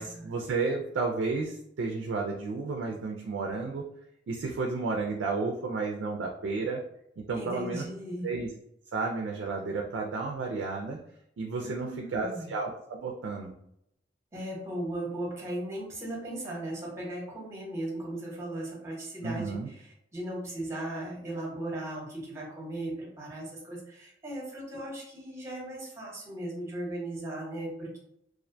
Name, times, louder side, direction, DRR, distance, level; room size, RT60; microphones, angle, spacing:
voice 1, 0.0-3.8 4.3-6.8 7.3-7.8 8.2-8.5 8.9-11.0 11.4-13.5 19.2-19.7, right 4 dB, 75° right, 1 dB, 0.3 m, -32 dB
voice 2, 7.3-8.3 11.6-12.5 14.3-28.0, right 1 dB, 15° right, -3 dB, 0.8 m, -37 dB
2.4 x 2.1 x 2.6 m, 0.75 s
head